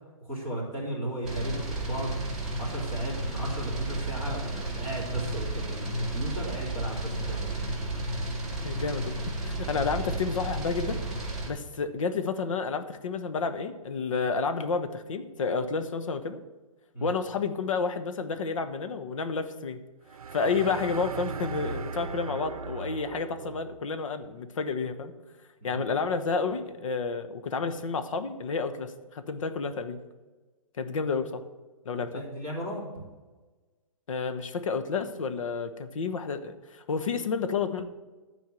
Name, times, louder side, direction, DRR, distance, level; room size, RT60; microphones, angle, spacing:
voice 1, 0.2-2.1 2.6-7.6 16.9-17.1 25.6-25.9 32.0-32.9, right 1 dB, 20° left, -5 dB, 3.3 m, -35 dB
sound 1, 1.2-11.5, right 2 dB, 5° right, 1.9 m, -32 dB
voice 2, 8.6-11.0 11.5-16.4 17.0-19.8 20.3-25.1 25.6-30.0 30.8-31.4 31.8-32.2 34.1-37.8, left 5 dB, 65° left, 9 dB, 1.0 m, -30 dB
sound 2, 20.1-23.8, right 5 dB, 90° right, 0.6 m, -37 dB
12.0 x 4.6 x 7.6 m, 1.2 s
hypercardioid pair, 170°, 18 cm